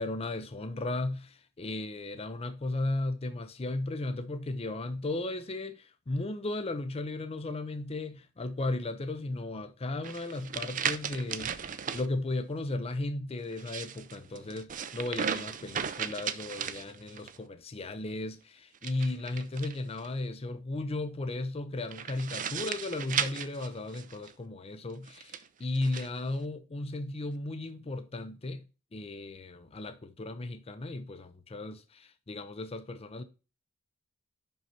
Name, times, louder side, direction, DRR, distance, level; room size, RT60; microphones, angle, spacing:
voice 1, 0.0-28.6 28.9-33.2, left 2 dB, 30° left, 0.5 m, -35 dB
sound 1, 10.0-12.1 13.5-17.4 18.7-20.1 21.9-24.3 25.1-26.1, right 8 dB, 40° right, 0.5 m, -36 dB
5.5 x 5.4 x 5.8 m
head